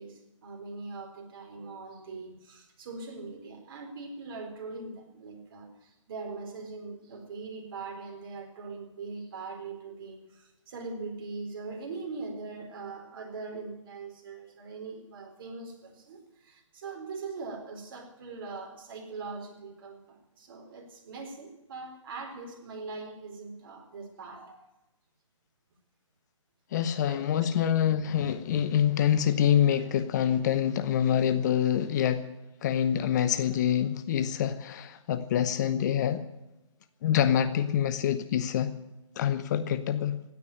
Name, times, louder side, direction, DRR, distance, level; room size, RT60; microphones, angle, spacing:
voice 1, 0.0-24.6 27.1-27.7 28.5-28.9 31.8-31.9, right 4 dB, 45° right, 3 dB, 4.1 m, -41 dB
voice 2, 26.7-32.2 32.6-36.2 37.0-38.7 39.2-40.2, left 9 dB, 35° left, 12 dB, 0.9 m, -26 dB
16.5 x 9.6 x 9.0 m, 0.97 s
figure-of-eight pair, 135°, 16 cm